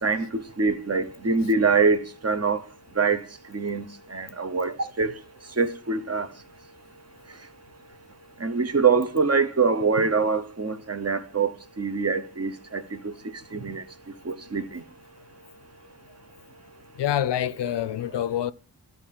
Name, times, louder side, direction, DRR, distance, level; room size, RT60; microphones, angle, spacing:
voice 1, 0.0-2.6 3.0-3.2 3.5-3.9 4.1-5.1 5.6-6.3 8.4-11.5 11.8-13.1 13.5-13.8 14.3-14.6, right 4 dB, 35° right, 1.0 m, -24 dB
voice 2, 17.0-18.5, left 11 dB, 75° left, 0.6 m, -26 dB
13.0 x 4.5 x 7.6 m
wide cardioid pair, 125°, 42 cm